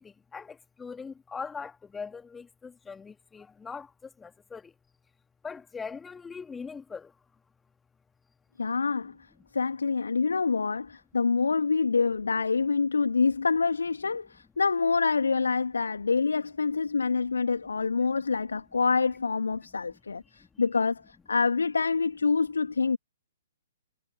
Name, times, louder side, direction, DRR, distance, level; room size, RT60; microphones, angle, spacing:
voice 1, 0.0-4.7 5.4-7.1 19.9-20.5, left 5 dB, 10° left, 2.7 m, -41 dB
voice 2, 8.6-9.1 9.5-23.0, left 4 dB, 70° left, 2.4 m, -26 dB
figure-of-eight pair, 120°, 0 cm